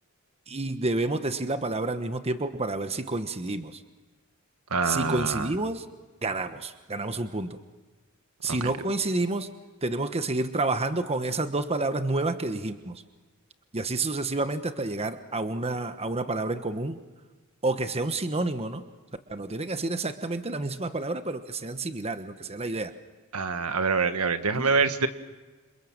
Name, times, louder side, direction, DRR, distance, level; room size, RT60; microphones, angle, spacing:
voice 1, 0.5-3.8 4.8-5.8 6.2-7.6 8.4-9.5 9.8-13.0 13.7-17.0 17.6-18.8 19.3-22.9 24.5-24.7, right 2 dB, 30° right, 9 dB, 1.2 m, -29 dB
voice 2, 4.7-5.5 8.6-8.7 23.3-25.1, right 4 dB, 80° right, 9 dB, 1.6 m, -25 dB
29.0 x 27.0 x 7.4 m, 1.3 s
head